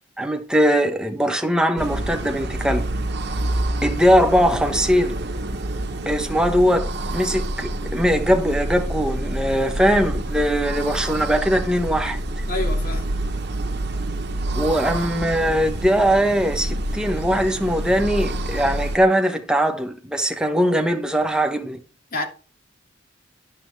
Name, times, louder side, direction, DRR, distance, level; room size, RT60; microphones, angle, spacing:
voice 1, 0.2-2.9 3.8-5.2 6.1-12.4 14.6-21.8, equal, 5° right, 1.1 m, -21 dB
sound 1, 1.8-19.0, right 1 dB, 60° right, 1.0 m, -27 dB
voice 2, 12.5-13.1 22.1-22.3, left 2 dB, 50° left, 2.4 m, -28 dB
10.0 x 7.5 x 3.3 m
head